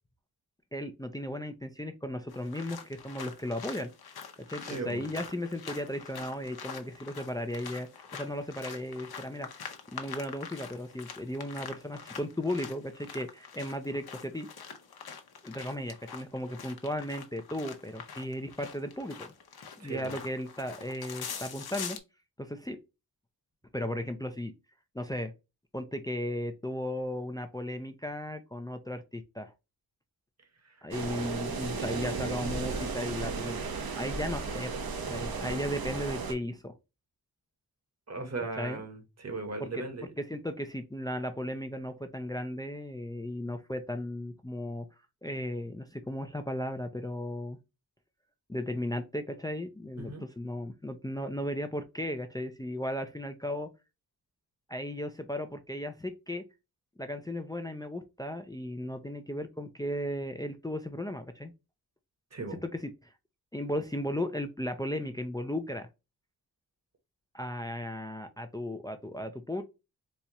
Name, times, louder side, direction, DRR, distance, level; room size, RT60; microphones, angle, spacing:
voice 1, 0.7-3.9 4.5-9.5 9.9-14.5 15.4-19.3 19.8-22.0 22.4-22.8 23.7-24.5 24.9-25.3 25.7-29.5 30.8-34.7 35.1-36.7 38.6-38.8 39.6-39.8 40.2-44.9 45.2-47.6 48.5-53.7 54.7-56.4 57.0-61.5 62.5-63.1 63.5-65.9 67.3-69.6, left 1 dB, 10° left, 7 dB, 0.4 m, -36 dB
sound 1, 2.3-22.0, left 6 dB, 75° left, 0.8 m, -45 dB
voice 2, 4.6-5.0 19.8-20.1 30.6-30.8 38.1-40.0 50.0-50.2 62.3-62.6, right 3 dB, 45° right, 5 dB, 1.1 m, -38 dB
sound 2, 30.9-36.3, right 4 dB, 70° right, 0.9 m, -34 dB
4.2 x 2.4 x 2.9 m, 0.25 s
wide cardioid pair, 115°, 38 cm